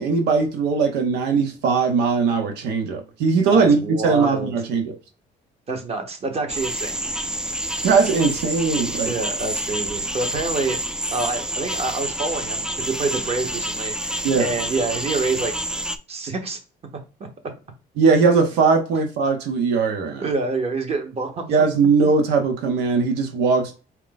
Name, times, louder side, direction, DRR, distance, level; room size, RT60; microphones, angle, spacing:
voice 1, 0.0-4.9 7.8-9.1 14.2-14.5 18.0-20.3 21.5-23.8, right 4 dB, 85° right, 0.8 m, -20 dB
voice 2, 3.5-4.5 5.7-7.0 9.0-10.8 11.1-15.5 16.1-16.6 20.2-21.5, right 3 dB, 35° right, 1.2 m, -27 dB
sound 1, 6.5-16.0, right 1 dB, 5° right, 0.3 m, -28 dB
4.4 x 2.2 x 3.9 m
cardioid pair, 110°, 17 cm